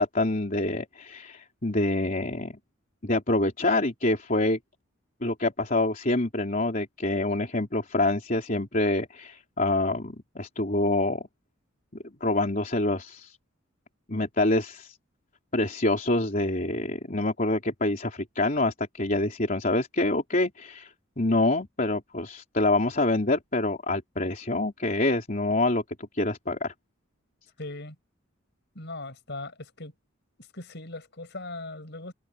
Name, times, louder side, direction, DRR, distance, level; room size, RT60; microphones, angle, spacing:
voice 1, 0.0-2.5 3.0-4.6 5.2-11.2 12.2-13.3 14.1-15.0 15.5-25.8 26.1-26.7, left 2 dB, 40° left, 3.6 m, -26 dB
voice 2, 27.6-27.9 28.7-29.9 30.5-32.1, left 2 dB, 55° left, 6.7 m, -39 dB
head